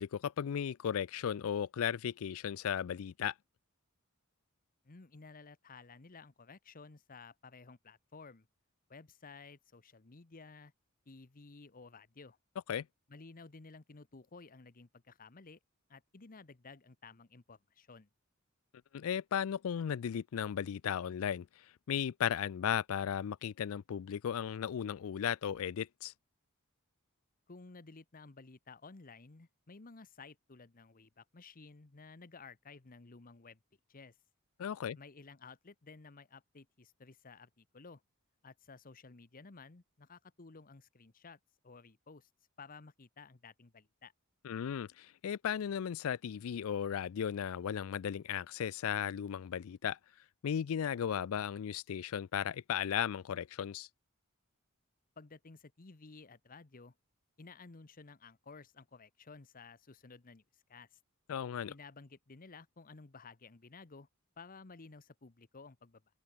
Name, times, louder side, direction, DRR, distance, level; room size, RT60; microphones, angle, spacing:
voice 1, 0.0-3.3 12.7-12.9 18.9-21.5 21.9-26.1 34.6-35.0 44.4-50.0 50.4-53.9 61.3-61.7, left 8 dB, 70° left, 0.4 m, -35 dB
voice 2, 4.8-8.5 8.9-10.7 11.1-12.4 13.1-15.6 15.9-18.1 27.5-33.6 33.9-34.2 35.0-38.0 38.4-41.4 41.6-42.3 42.6-44.1 55.2-56.9 57.4-60.4 60.7-61.0 61.6-64.1 64.4-66.0, left 4 dB, 40° left, 1.0 m, -54 dB
head